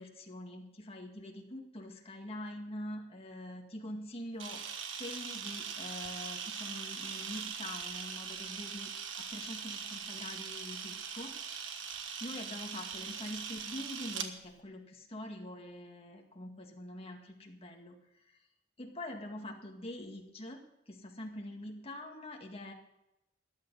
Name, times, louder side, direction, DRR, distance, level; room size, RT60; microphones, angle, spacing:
voice 1, 0.0-4.6 5.0-8.9 9.3-11.3 11.6-18.0 18.8-22.7, left 1 dB, 30° left, 1 dB, 2.0 m, -44 dB
Camera, 4.4-14.3, right 7 dB, 75° right, 1.4 m, -41 dB
14.0 x 11.0 x 5.5 m, 0.86 s
head